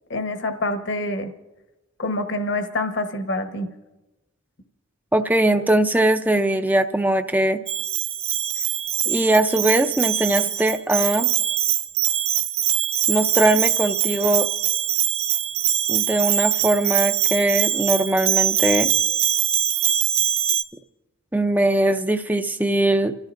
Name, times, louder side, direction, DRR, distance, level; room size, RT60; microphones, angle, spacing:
voice 1, 0.1-1.3 2.0-3.7, left 2 dB, 55° left, 6 dB, 1.2 m, -26 dB
voice 2, 5.1-7.6 9.1-11.3 13.1-14.5 15.9-18.9 21.3-23.1, right 1 dB, 10° right, 8 dB, 0.5 m, -20 dB
Bell, 7.7-20.6, right 11 dB, 75° right, 0.6 m, -23 dB
29.5 x 14.0 x 2.6 m, 1.1 s
head